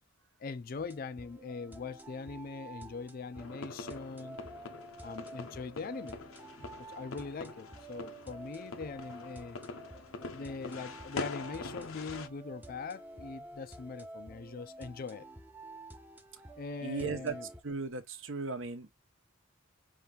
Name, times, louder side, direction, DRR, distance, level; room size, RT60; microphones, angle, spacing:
voice 1, 0.4-4.4 5.0-6.2 6.6-9.6 10.3-15.3 16.6-17.5, left 4 dB, 45° left, 0.4 m, -42 dB
sound 1, 0.8-17.6, right 2 dB, 10° right, 0.6 m, -50 dB
sound 2, 3.3-12.3, left 3 dB, 85° left, 0.8 m, -44 dB
voice 2, 16.8-17.4 17.6-18.9, right 4 dB, 65° right, 0.9 m, -36 dB
5.6 x 2.6 x 3.3 m
head